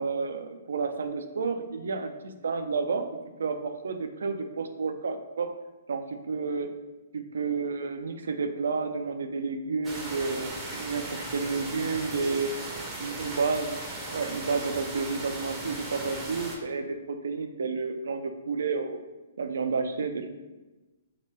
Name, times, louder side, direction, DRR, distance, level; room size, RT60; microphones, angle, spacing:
voice 1, 0.0-2.1 2.4-3.1 3.4-5.5 5.9-6.7 7.1-12.5 13.0-19.0 19.4-20.3, right 4 dB, 75° right, 7 dB, 0.3 m, -30 dB
sound 1, 9.8-16.6, right 1 dB, 15° right, 0.6 m, -37 dB
2.8 x 2.2 x 3.2 m, 1.1 s
hypercardioid pair, 140°, 0 cm